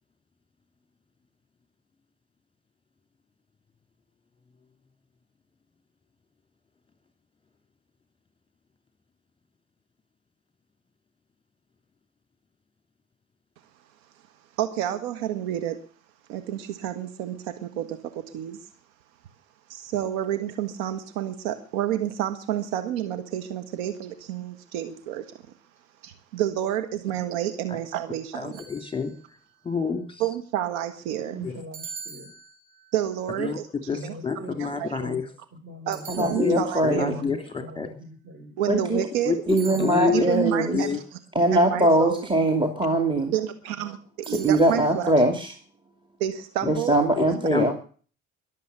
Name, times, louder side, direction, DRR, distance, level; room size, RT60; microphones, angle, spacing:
voice 1, 14.6-15.8 16.3-18.6 19.7-25.2 26.0-28.6 30.2-31.4 32.9-34.2 34.6-34.9 35.9-37.2 38.6-39.4 40.1-41.2 41.5-42.3 43.3-45.1 46.2-47.0, right 11 dB, 70° right, 9 dB, 1.6 m, -29 dB
voice 2, 28.3-29.1 29.6-30.1 33.4-33.6 33.9-35.2 36.2-37.4 37.7-37.9 39.3-39.4 39.8-40.3 40.7-41.0 47.2-47.3 47.5-47.7, left 5 dB, 15° left, 7 dB, 3.1 m, -27 dB
sound 1, 28.5-29.4 31.7-33.0 35.9-37.0 39.5-40.5 44.2-45.0, right 6 dB, 90° right, 4.8 m, -43 dB
voice 3, 31.3-32.3 33.9-35.2 35.5-36.1 36.9-38.5 39.7-40.2, equal, 30° right, 5 dB, 6.9 m, -42 dB
voice 4, 36.1-37.1 38.7-39.0 39.5-40.8 41.3-43.3 44.3-45.5 46.7-47.7, right 1 dB, 10° right, 7 dB, 2.5 m, -22 dB
22.0 x 7.8 x 6.7 m, 0.43 s
hypercardioid pair, 60°, 40 cm